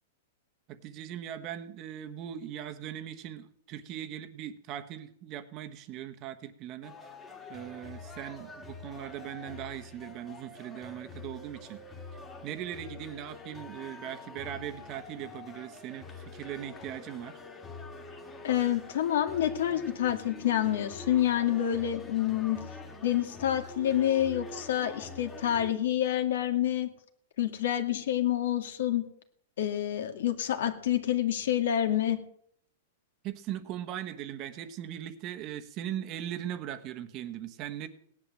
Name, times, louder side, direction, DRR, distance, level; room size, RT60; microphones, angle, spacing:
voice 1, 0.7-6.9 7.5-11.8 12.4-17.4 33.2-37.9, right 11 dB, 25° right, 8 dB, 1.2 m, -39 dB
sound 1, 6.8-25.7, left 3 dB, 10° left, 1.9 m, -45 dB
voice 2, 18.4-22.6 23.0-26.9 27.4-29.0 29.6-32.2, left 11 dB, 65° left, 5 dB, 2.1 m, -28 dB
18.0 x 10.5 x 7.6 m, 0.66 s
supercardioid pair, 175°, 0 cm